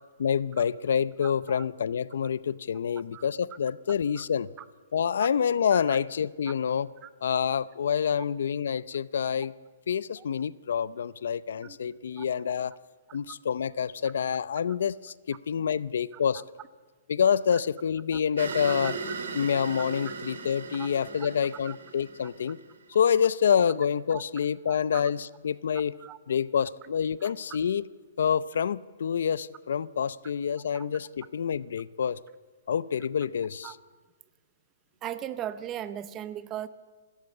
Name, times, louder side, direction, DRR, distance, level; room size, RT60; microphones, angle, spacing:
voice 1, 0.2-4.5 4.9-6.9 7.2-9.5 9.9-12.8 13.1-16.4 17.1-19.0 19.3-22.6 22.9-25.9 26.3-27.8 28.2-32.2 32.7-33.8, left 7 dB, 60° left, 19 dB, 0.6 m, -27 dB
voice 2, 1.2-1.6 3.1-3.2 4.2-4.3 5.7-6.0 7.0-7.1 10.2-10.3 11.6-11.8 12.2-12.3 18.8-18.9 20.0-20.1 20.8-20.9 21.7-21.8 24.1-24.2 24.7-25.0 26.0-26.2 27.2-27.3 30.7-30.9 33.6-33.7 35.0-36.7, right 11 dB, 15° right, 14 dB, 0.6 m, -38 dB
sound 1, 18.4-23.0, right 4 dB, 70° right, 3.4 m, -37 dB
28.5 x 13.0 x 8.4 m, 1.4 s
hypercardioid pair, 180°, 0 cm